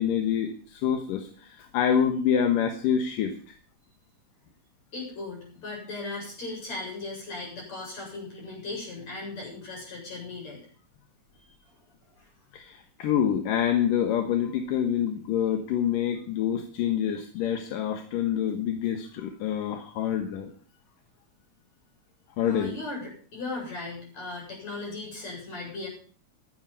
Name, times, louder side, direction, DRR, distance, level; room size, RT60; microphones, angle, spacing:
voice 1, 0.0-3.6 12.5-20.5 22.4-22.8, left 9 dB, 65° left, 6 dB, 2.7 m, -26 dB
voice 2, 4.9-10.6 11.4-11.6 12.2-12.3 17.1-17.2 22.4-25.9, left 3 dB, 45° left, -1 dB, 9.1 m, -37 dB
15.5 x 13.0 x 5.4 m, 0.43 s
omnidirectional pair, 4.5 m